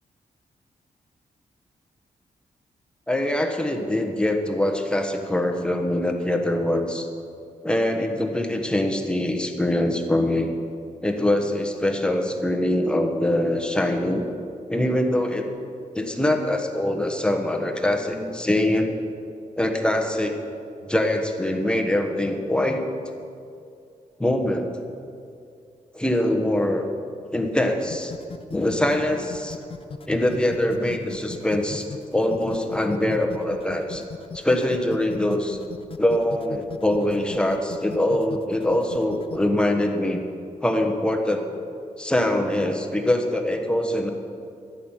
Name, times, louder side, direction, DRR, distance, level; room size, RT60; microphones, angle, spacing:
voice 1, 3.1-7.1 7.6-10.5 11.0-14.2 14.7-15.5 15.9-19.0 19.6-20.3 20.8-22.8 24.2-24.7 25.9-26.9 27.3-28.1 28.5-29.6 30.1-31.9 32.1-34.0 34.3-35.6 36.0-40.2 40.6-41.4 42.0-44.1, left 1 dB, 5° left, 3 dB, 1.2 m, -23 dB
sound 1, 27.8-39.4, left 5 dB, 40° left, 0.7 m, -38 dB
12.0 x 8.4 x 7.3 m, 2.5 s
wide cardioid pair, 115°, 14 cm